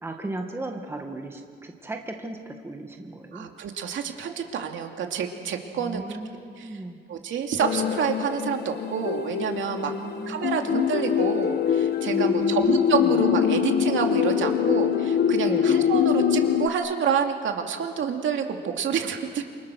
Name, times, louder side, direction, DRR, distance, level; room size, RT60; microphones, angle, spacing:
voice 1, 0.0-3.4 5.8-7.0 9.8-10.7 12.1-13.2 15.5-15.9, right 2 dB, 10° right, 3 dB, 1.8 m, -35 dB
voice 2, 3.3-6.2 6.6-6.7 7.1-9.9 10.3-19.4, right 7 dB, 75° right, 3 dB, 2.6 m, -28 dB
sound 1, 7.6-16.7, left 8 dB, 55° left, 1.0 m, -24 dB
29.5 x 28.5 x 6.4 m, 2.2 s
wide cardioid pair, 175°, 20 cm